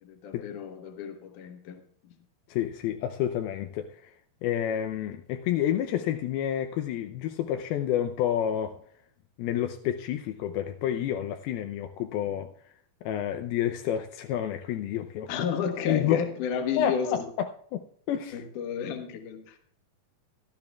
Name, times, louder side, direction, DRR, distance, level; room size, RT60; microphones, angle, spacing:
voice 1, 0.0-2.2 15.3-17.2 18.3-19.6, left 7 dB, 65° left, 6 dB, 2.7 m, -32 dB
voice 2, 2.5-4.1 4.4-8.8 9.4-12.5 13.0-15.3 15.9-16.2 16.8-18.4, left 10 dB, 85° left, 6 dB, 2.6 m, -29 dB
17.5 x 12.5 x 2.4 m, 0.62 s
omnidirectional pair, 4.4 m